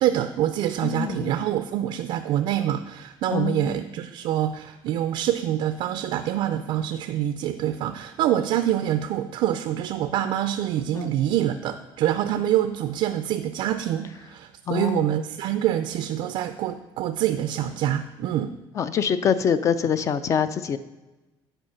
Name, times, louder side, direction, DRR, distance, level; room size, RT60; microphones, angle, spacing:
voice 1, 0.0-18.5, right 11 dB, 60° right, 9 dB, 0.4 m, -26 dB
voice 2, 0.8-1.3 3.3-3.8 10.9-11.1 14.7-15.1 18.7-20.8, left 7 dB, 30° left, 13 dB, 0.4 m, -25 dB
8.9 x 4.6 x 5.6 m, 1.1 s
cardioid pair, 160°, 10 cm